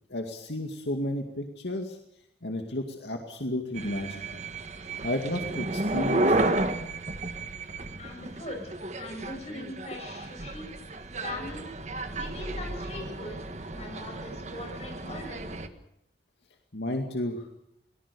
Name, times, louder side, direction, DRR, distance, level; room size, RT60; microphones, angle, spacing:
voice 1, 0.1-2.0 2.4-4.4 5.0-6.5 16.7-17.4, left 1 dB, 80° left, 4 dB, 2.3 m, -32 dB
sound 1, 3.7-15.7, right 2 dB, 40° right, 1.6 m, -32 dB
voice 2, 8.0-10.7 11.1-11.7 12.1-15.5, left 2 dB, 40° left, 2 dB, 7.5 m, -41 dB
23.5 x 19.5 x 6.9 m, 0.75 s
head